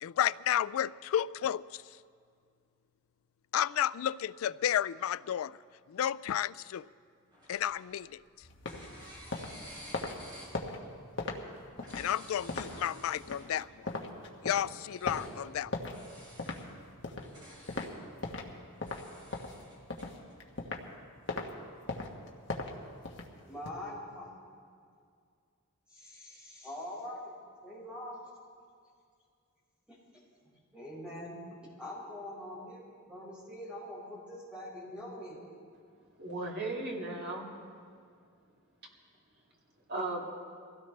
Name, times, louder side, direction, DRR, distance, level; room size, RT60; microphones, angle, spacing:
voice 1, 0.0-1.6 3.5-5.6 5.9-6.8 7.5-8.2 11.9-13.8 14.4-15.7, left 10 dB, 80° left, 18 dB, 0.3 m, -32 dB
sound 1, 7.3-8.2 8.7-10.7 11.7-13.7 14.8-15.3 15.9-16.7 17.1-17.9 18.9-20.3, equal, 20° right, 3.5 m, -52 dB
sound 2, 8.4-18.5 18.8-20.9 21.3-21.5 21.9-23.7, left 2 dB, 55° left, 1.3 m, -39 dB
voice 2, 23.4-24.3 25.9-27.3 27.6-28.2 29.9-30.0 30.7-31.4 31.8-35.4, left 1 dB, 5° right, -7 dB, 5.0 m, -43 dB
voice 3, 36.2-37.5 39.9-40.3, right 2 dB, 50° right, -2 dB, 2.3 m, -36 dB
23.0 x 16.5 x 3.3 m, 2.2 s
head